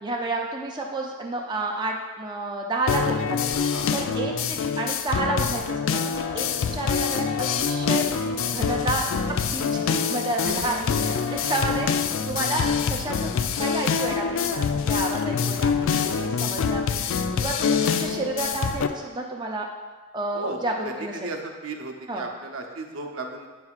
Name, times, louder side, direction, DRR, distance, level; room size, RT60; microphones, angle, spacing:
voice 1, 0.0-3.4 3.9-6.5 6.7-7.2 7.6-8.0 8.5-11.9 12.3-13.3 13.6-19.7 20.1-21.3 22.1-22.2, right 2 dB, 20° right, 0 dB, 0.4 m, -30 dB
sound 1, 2.9-18.9, left 6 dB, 65° left, 0.3 m, -25 dB
voice 2, 3.7-4.3 10.4-10.7 12.3-12.5 20.3-20.6 20.8-23.5, right 2 dB, 80° right, 3 dB, 0.7 m, -35 dB
sound 2, 5.3-11.9, equal, 45° left, 0.8 m, -39 dB
8.3 x 5.9 x 2.4 m, 1.3 s
head